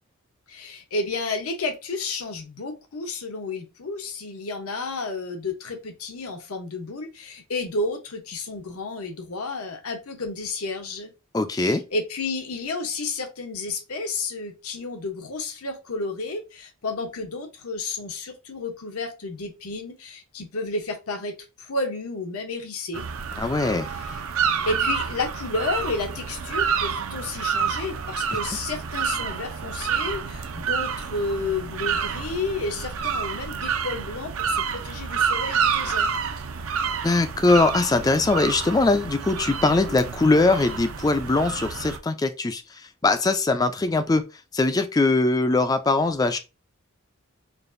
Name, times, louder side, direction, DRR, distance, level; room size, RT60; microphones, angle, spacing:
voice 1, 0.5-11.1 11.5-23.1 23.9-24.2 24.7-36.1, left 3 dB, 85° left, 0.9 m, -31 dB
voice 2, 11.3-11.8 23.4-23.9 37.0-44.2 44.5-46.4, left 3 dB, 15° left, 0.3 m, -21 dB
sound 1, 22.9-42.0, right 6 dB, 75° right, 0.5 m, -28 dB
5.0 x 2.5 x 2.5 m
head